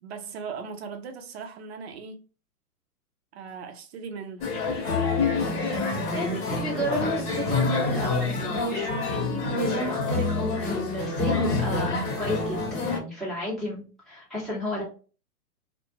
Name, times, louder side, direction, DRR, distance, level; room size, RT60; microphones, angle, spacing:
voice 1, 0.0-2.2 3.3-4.5, right 5 dB, 45° right, 0.5 m, -38 dB
sound 1, 4.4-13.0, left 3 dB, 40° left, 1.0 m, -27 dB
voice 2, 6.1-14.8, equal, ahead, 0.7 m, -32 dB
2.3 x 2.2 x 2.9 m
hypercardioid pair, 135°, 48 cm